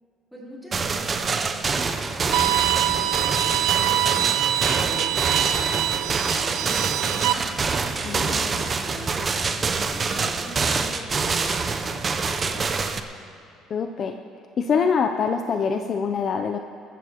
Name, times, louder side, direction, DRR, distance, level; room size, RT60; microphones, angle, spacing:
voice 1, 0.3-12.6, right 1 dB, ahead, -7 dB, 3.2 m, -40 dB
sound 1, 0.7-13.0, right 4 dB, 25° right, 0.5 m, -26 dB
Bowed string instrument, 2.3-7.3, right 13 dB, 85° right, 0.5 m, -24 dB
voice 2, 8.0-8.4 13.7-14.2 14.6-16.6, left 6 dB, 35° left, 6 dB, 0.4 m, -24 dB
21.0 x 14.5 x 2.9 m, 2.5 s
cardioid pair, 170°, 0 cm